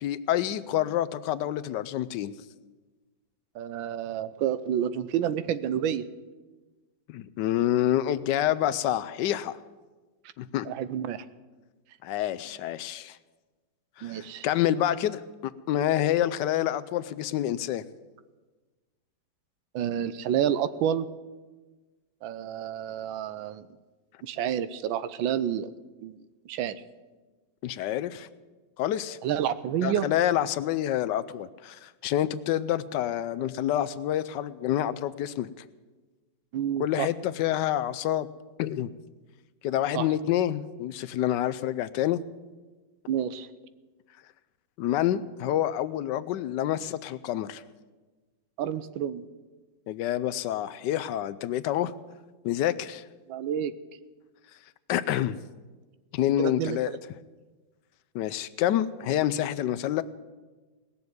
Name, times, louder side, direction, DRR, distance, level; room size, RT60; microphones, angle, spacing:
voice 1, 0.0-2.3 7.1-9.5 10.4-10.7 12.0-13.2 14.0-15.2 15.7-17.9 27.6-28.3 28.8-29.2 29.8-35.5 36.8-38.3 38.6-38.9 39.6-42.2 44.8-47.6 49.9-51.9 52.4-53.0 54.9-55.4 56.1-57.0 58.1-60.0, left 12 dB, 70° left, 13 dB, 1.1 m, -27 dB
voice 2, 3.5-6.1 10.6-11.2 14.0-14.5 19.7-21.1 22.2-23.7 24.2-25.7 26.0-26.2 26.5-26.8 29.2-30.1 36.5-37.1 39.9-40.0 43.1-43.5 48.6-49.2 53.3-53.7 56.4-56.8, right 9 dB, 85° right, 15 dB, 1.5 m, -29 dB
18.5 x 7.0 x 9.4 m, 1.3 s
omnidirectional pair, 2.1 m